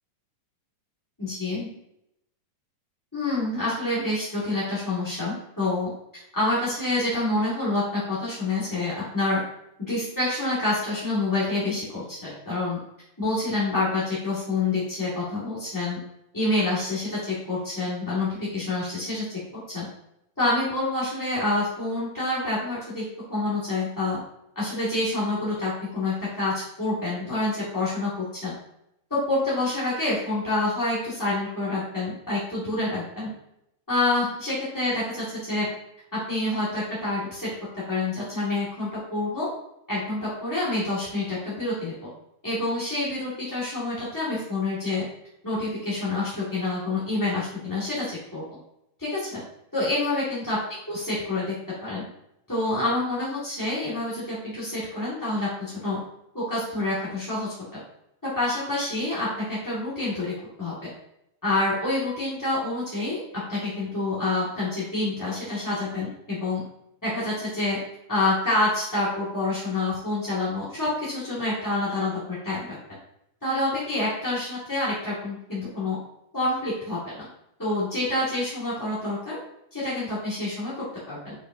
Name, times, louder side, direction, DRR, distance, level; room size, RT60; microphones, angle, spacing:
voice 1, 1.2-1.7 3.1-5.9 6.3-9.4 9.8-12.8 13.2-16.0 16.3-19.2 19.7-19.8 20.4-23.0 23.3-24.2 24.5-28.5 29.1-33.3 33.9-35.7 36.1-37.5 37.7-39.5 39.9-41.9 42.4-45.0 45.4-48.4 49.0-49.4 49.7-50.6 50.9-51.5 51.8-52.0 52.5-56.0 56.3-57.5 58.2-60.3 60.6-60.7 61.4-63.2 63.5-66.6 67.0-67.8 68.1-72.8 73.4-76.0 76.3-77.2 77.6-79.4 79.7-81.3, left 2 dB, 10° left, -9 dB, 1.0 m, -27 dB
8.0 x 5.2 x 2.6 m, 0.80 s
omnidirectional pair, 3.6 m